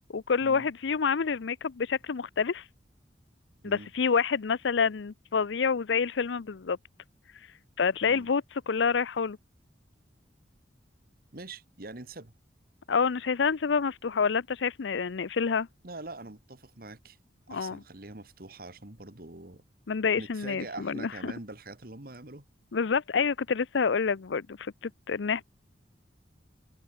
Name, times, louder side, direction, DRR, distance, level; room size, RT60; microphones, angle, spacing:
voice 1, 0.1-2.6 3.6-6.8 7.8-9.4 12.9-15.7 17.5-17.8 19.9-21.3 22.7-25.4, left 5 dB, 85° left, 0.6 m, -28 dB
voice 2, 11.3-12.3 15.8-17.2 17.5-19.6 20.2-22.5, right 2 dB, 50° right, 1.9 m, -44 dB
open air
head